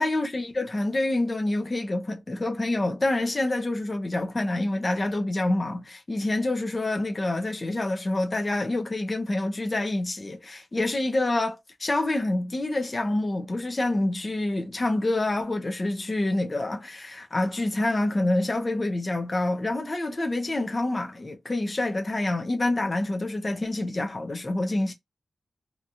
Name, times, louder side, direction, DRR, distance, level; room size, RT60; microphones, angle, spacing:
voice 1, 0.0-24.9, left 2 dB, 25° left, 0.5 m, -27 dB
2.7 x 2.3 x 2.7 m
wide cardioid pair, 135°, 0 cm